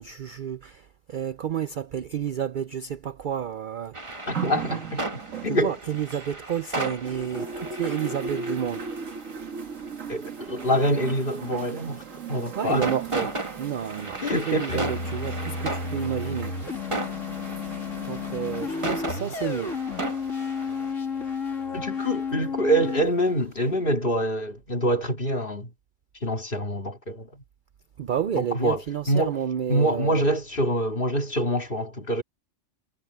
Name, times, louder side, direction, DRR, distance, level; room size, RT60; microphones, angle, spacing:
voice 1, 0.0-4.0 5.5-8.8 12.5-14.2 14.5-16.5 18.0-19.8 28.0-30.2, right 9 dB, 55° right, 0.5 m, -30 dB
sound 1, 3.9-20.9, right 2 dB, 25° right, 1.8 m, -36 dB
voice 2, 4.3-5.7 7.4-7.5 10.1-12.9 14.2-14.9 21.7-25.7 26.2-27.4 28.3-28.8 29.1-29.4 29.7-32.2, equal, 45° left, 2.6 m, -26 dB
sound 2, 4.3-6.7 7.0-21.8 22.6-22.7, right 5 dB, 85° right, 2.0 m, -39 dB
sound 3, 14.7-23.0, left 5 dB, 80° left, 3.4 m, -32 dB
omnidirectional pair, 1.3 m